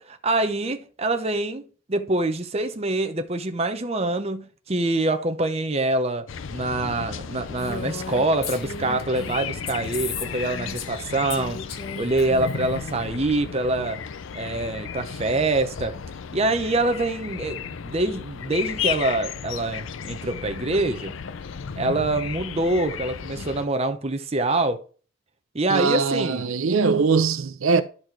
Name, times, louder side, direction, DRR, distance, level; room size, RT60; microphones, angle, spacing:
voice 1, 0.0-1.6 1.9-11.6 12.0-14.0 14.3-16.0 16.3-21.1 21.8-24.8 25.5-26.4, right 2 dB, 30° right, 0.7 m, -25 dB
sound 1, 6.3-23.7, left 7 dB, 70° left, 0.5 m, -34 dB
Female speech woman speaking, 7.6-11.0 11.3-13.1, left 5 dB, 50° left, 1.2 m, -36 dB
voice 2, 25.7-27.8, right 4 dB, 80° right, 0.7 m, -21 dB
11.5 x 4.2 x 4.5 m
head